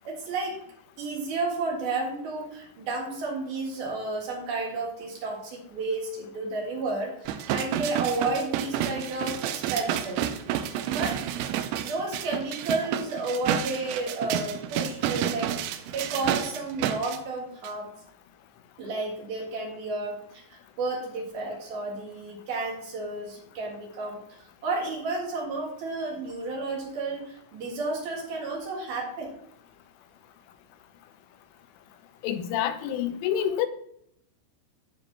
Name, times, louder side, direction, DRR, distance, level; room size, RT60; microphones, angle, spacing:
voice 1, 0.0-0.6 1.0-10.3 10.6-11.2 11.8-15.5 15.9-17.9 18.8-29.3, right 3 dB, 60° right, -1 dB, 3.3 m, -32 dB
sound 1, 7.3-17.2 17.6-17.7, right 10 dB, 85° right, 2.7 m, -30 dB
voice 2, 32.2-33.7, left 10 dB, 90° left, 9 dB, 3.2 m, -27 dB
14.0 x 5.3 x 2.9 m, 0.71 s
omnidirectional pair, 5.5 m